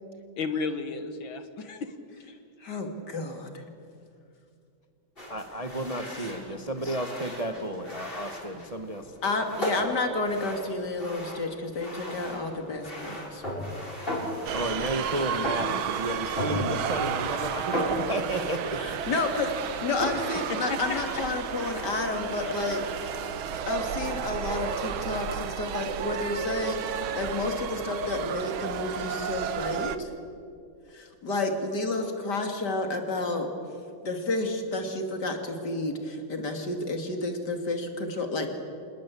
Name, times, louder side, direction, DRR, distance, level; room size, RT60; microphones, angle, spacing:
voice 1, 0.4-1.9 20.5-21.3, left 4 dB, 70° left, 8 dB, 2.1 m, -33 dB
voice 2, 2.6-3.6 5.6-5.9 6.2-6.5 6.8-7.0 9.2-13.4 18.7-19.5 19.8-22.8 23.7-30.1 30.9-33.5 34.0-38.6, left 2 dB, 50° left, 4 dB, 3.0 m, -31 dB
sound 1, 5.2-23.5, equal, 25° left, 6.0 m, -37 dB
voice 3, 5.3-9.1 14.5-19.0, right 1 dB, 20° right, 6 dB, 1.0 m, -32 dB
sound 2, 14.5-30.0, right 9 dB, 75° right, 1.8 m, -33 dB
26.5 x 20.0 x 8.5 m, 2.4 s
omnidirectional pair, 2.3 m